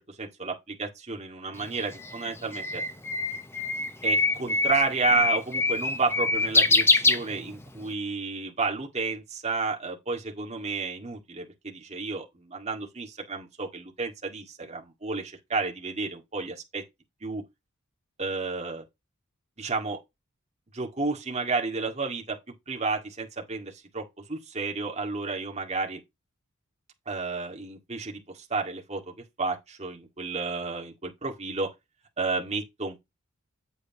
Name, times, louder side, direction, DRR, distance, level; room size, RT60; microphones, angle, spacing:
voice 1, 0.2-2.8 4.0-16.8 17.2-17.4 18.2-18.8 19.6-20.0 20.7-22.4 22.7-24.0 24.3-26.0 27.1-29.1 29.4-31.7 32.2-33.0, right 4 dB, 30° right, 2.0 m, -31 dB
Bird, 1.6-7.8, left 3 dB, 10° left, 0.7 m, -24 dB
8.2 x 8.0 x 3.0 m
head